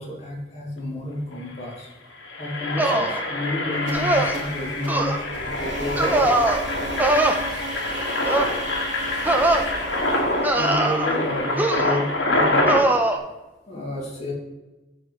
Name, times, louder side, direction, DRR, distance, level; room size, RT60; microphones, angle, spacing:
voice 1, 0.0-1.9 2.4-6.3 10.5-12.7 13.7-14.3, left 1 dB, 35° left, -4 dB, 2.4 m, -30 dB
Engine, 1.1-1.2 1.4-1.6 2.1-12.8, left 1 dB, 75° left, 1.8 m, -26 dB
sound 1, 2.8-3.2 3.9-4.4 4.9-5.2 6.0-6.6 7.0-7.4 8.3-8.6 9.2-9.7 10.4-11.2 11.6-12.0 12.7-13.2, right 2 dB, 10° right, 0.6 m, -21 dB
sound 2, 3.8-11.7, right 2 dB, 75° right, 1.3 m, -36 dB
13.0 x 4.7 x 3.1 m, 1.1 s
head